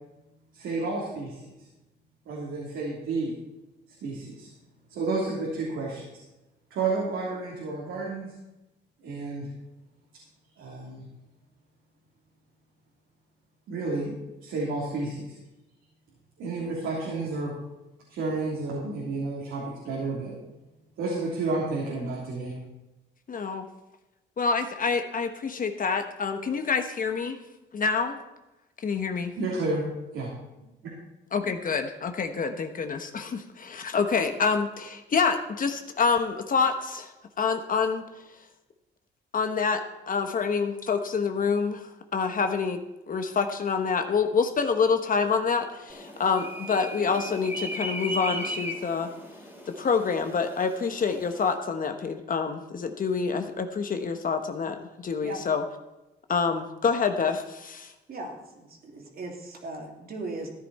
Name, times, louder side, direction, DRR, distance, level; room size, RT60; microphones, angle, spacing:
voice 1, 0.5-1.6 2.2-3.3 4.0-6.1 6.7-8.3 9.0-9.5 10.6-11.0 13.7-14.1 14.4-15.4 16.4-17.5 18.1-20.3 21.0-22.5 29.4-29.8 30.1-30.3, right 3 dB, 80° right, -4 dB, 3.2 m, -31 dB
voice 2, 23.3-23.6 24.4-27.4 27.7-28.2 28.8-29.3 31.3-37.1 37.4-38.0 39.3-42.8 43.1-49.1 49.7-55.6 56.3-57.9, left 5 dB, 45° left, 7 dB, 1.1 m, -27 dB
sound 1, 45.9-51.5, equal, 10° right, 3.3 m, -37 dB
voice 3, 58.1-60.5, right 2 dB, 50° right, 1 dB, 2.9 m, -38 dB
14.5 x 9.6 x 4.2 m, 0.99 s
cardioid pair, 90°, 20 cm